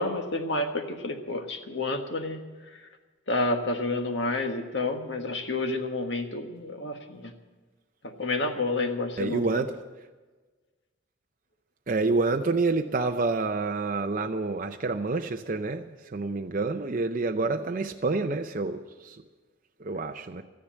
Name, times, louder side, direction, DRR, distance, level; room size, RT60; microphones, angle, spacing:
voice 1, 0.0-2.4 3.3-7.3 8.0-9.4, left 2 dB, 65° left, 5 dB, 1.5 m, -29 dB
voice 2, 9.2-9.7 11.9-15.8 16.1-19.2 19.8-20.4, right 3 dB, 45° right, 5 dB, 0.5 m, -28 dB
13.5 x 10.5 x 8.9 m, 1.3 s
head